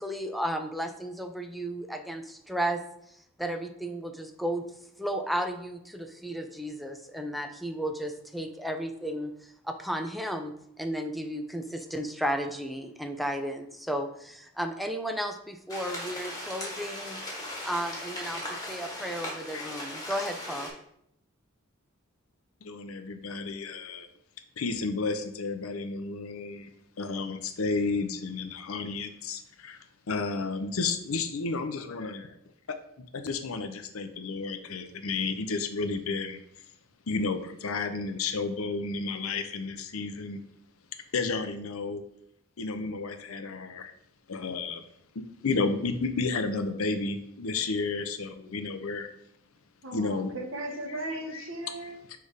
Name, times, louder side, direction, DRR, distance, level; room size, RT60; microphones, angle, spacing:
voice 1, 0.0-2.8 3.1-4.6 5.0-17.2 17.6-20.7, equal, ahead, 6 dB, 0.4 m, -34 dB
sound 1, 15.7-20.7, left 1 dB, 20° left, 1.9 m, -38 dB
voice 2, 18.4-18.7 19.1-19.7 22.6-24.1 24.6-29.8 30.1-32.3 32.7-36.4 37.1-40.4 41.1-42.0 42.6-43.9 44.3-44.8 45.1-49.1 49.9-50.3 50.9-51.0 51.3-51.5 51.8-52.2, left 4 dB, 85° left, 9 dB, 0.7 m, -32 dB
voice 3, 49.8-52.0, right 1 dB, 65° right, 3 dB, 1.1 m, -36 dB
6.4 x 3.4 x 5.0 m, 0.74 s
head